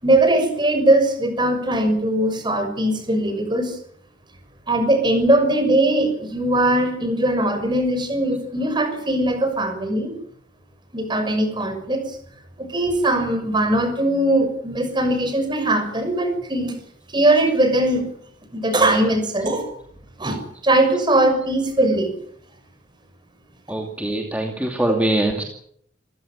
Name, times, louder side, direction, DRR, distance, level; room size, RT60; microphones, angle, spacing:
voice 1, 0.0-3.7 4.7-10.1 10.9-12.0 12.6-16.7 17.1-18.0 18.5-19.7 20.2-20.4 20.6-22.1 24.9-25.0, right 1 dB, 25° right, 7 dB, 6.4 m, -20 dB
voice 2, 23.7-25.4, right 1 dB, 10° right, 2 dB, 2.6 m, -23 dB
27.5 x 15.5 x 8.8 m, 0.67 s
head